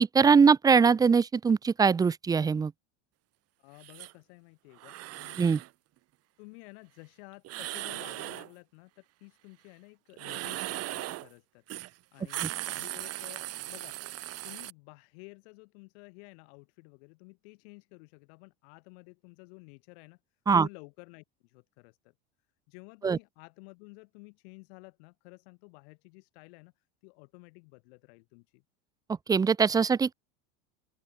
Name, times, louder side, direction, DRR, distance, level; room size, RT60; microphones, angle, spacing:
voice 1, 0.0-2.7 5.4-5.6 20.5-20.7 23.0-23.2 29.3-30.1, right 5 dB, 10° right, 0.4 m, -22 dB
voice 2, 3.6-5.4 6.4-11.6 12.1-14.0 14.4-20.2 20.6-22.1 22.7-28.6, left 31 dB, 70° left, 7.7 m, -52 dB
sound 1, 3.8-4.1 4.8-5.7 7.4-8.5 10.1-11.3 11.7-11.9 12.2-14.7, right 17 dB, 45° right, 2.4 m, -38 dB
open air
supercardioid pair, 125°, 33 cm